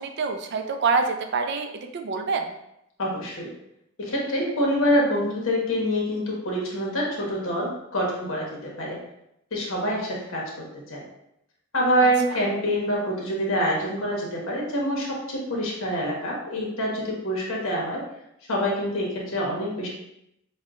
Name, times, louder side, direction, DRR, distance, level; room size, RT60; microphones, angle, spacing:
voice 1, 0.0-1.7 1.9-2.5 12.0-12.1, right 4 dB, 55° right, 5 dB, 0.4 m, -26 dB
voice 2, 3.0-3.5 4.0-9.0 9.5-11.0 11.7-18.0 18.5-19.9, equal, 85° left, -3 dB, 1.1 m, -26 dB
5.2 x 2.2 x 2.4 m, 0.81 s
head